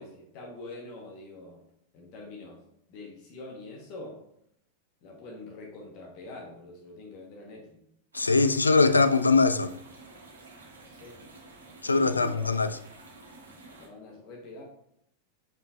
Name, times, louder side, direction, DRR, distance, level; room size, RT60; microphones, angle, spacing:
voice 1, 0.0-1.6 1.9-2.6 2.9-4.2 5.0-7.8 10.8-11.2 11.9-12.5 13.8-14.6, left 2 dB, 45° left, 1.2 m, -44 dB
voice 2, 8.1-9.7 11.8-12.8, left 3 dB, 80° left, 0.3 m, -22 dB
sound 1, 8.1-13.9, right 3 dB, 70° right, 1.6 m, -50 dB
6.6 x 5.5 x 2.5 m
figure-of-eight pair, 90°, 0 cm